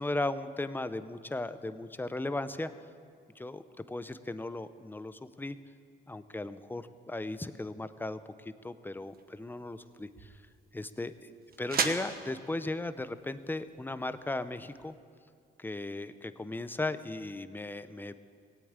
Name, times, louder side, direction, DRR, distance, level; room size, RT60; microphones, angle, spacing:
voice 1, 0.0-2.7 3.4-5.6 6.1-10.4 10.7-14.9 15.6-18.2, left 2 dB, 10° left, 13 dB, 0.7 m, -37 dB
sound 1, 9.0-14.9, right 6 dB, 50° right, 1.2 m, -39 dB
17.5 x 8.6 x 8.8 m, 2.3 s
cardioid pair, 90°, 20 cm